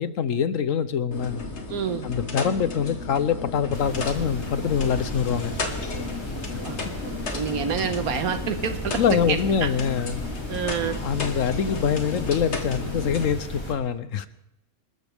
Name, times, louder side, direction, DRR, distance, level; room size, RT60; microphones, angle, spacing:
voice 1, 0.0-1.4 2.0-5.6 9.0-10.2 11.0-14.3, left 7 dB, 65° left, 14 dB, 1.1 m, -24 dB
sound 1, 1.1-13.3, left 3 dB, 50° left, 1.8 m, -34 dB
voice 2, 1.7-2.1 6.6-6.8 7.1-9.7 10.5-11.0, right 7 dB, 80° right, 9 dB, 1.6 m, -28 dB
sound 2, 3.7-13.7, equal, 20° left, 2.6 m, -35 dB
28.0 x 13.0 x 3.5 m, 0.84 s
omnidirectional pair, 1.5 m